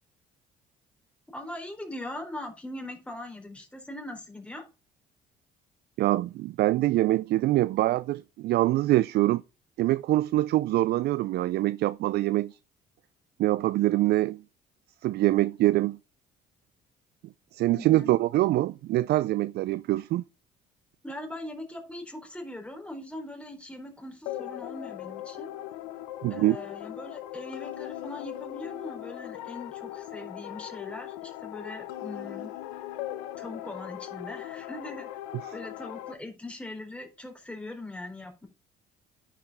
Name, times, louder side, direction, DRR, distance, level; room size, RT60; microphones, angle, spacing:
voice 1, 1.3-4.7 17.7-18.1 21.0-25.5 26.3-32.5 33.4-35.1 35.5-38.5, left 1 dB, 5° left, 4.0 m, -41 dB
voice 2, 6.0-9.4 9.8-12.6 13.4-14.4 15.0-16.0 17.5-20.2 26.2-26.6 35.4-35.5, right 16 dB, 60° right, 0.4 m, -24 dB
sound 1, 24.3-36.1, left 13 dB, 80° left, 0.8 m, -39 dB
10.5 x 5.0 x 5.3 m
hypercardioid pair, 55°, 19 cm